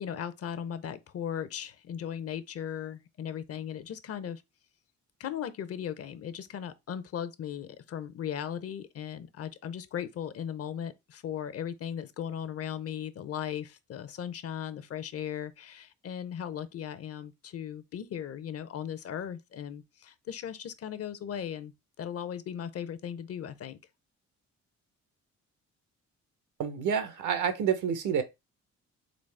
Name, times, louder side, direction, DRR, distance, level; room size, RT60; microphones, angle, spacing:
voice 1, 0.0-4.4 5.2-23.8, left 9 dB, 50° left, 0.6 m, -37 dB
voice 2, 26.6-28.2, right 7 dB, 80° right, 0.9 m, -28 dB
4.0 x 3.4 x 3.3 m
cardioid pair, 90°, 30 cm